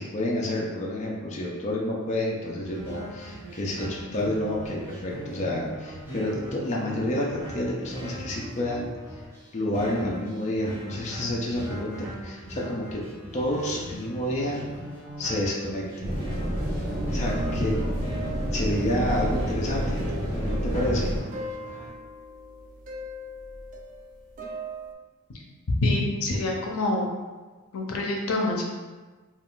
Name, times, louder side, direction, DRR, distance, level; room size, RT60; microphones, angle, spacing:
voice 1, 0.0-8.9 9.5-11.9 12.2-13.0 13.3-14.7 15.2-15.8 17.1-17.7 18.5-19.8 20.2-21.1, left 1 dB, 30° left, -3 dB, 0.4 m, -29 dB
sound 1, 2.6-21.9, equal, 10° right, 1.0 m, -39 dB
sound 2, 16.0-21.2, equal, 75° right, 0.8 m, -29 dB
sound 3, 16.8-24.9, right 1 dB, 35° right, 0.4 m, -40 dB
voice 2, 25.8-27.1 27.7-28.6, left 2 dB, 80° left, 0 dB, 0.5 m, -26 dB
2.4 x 2.3 x 3.6 m, 1.3 s
head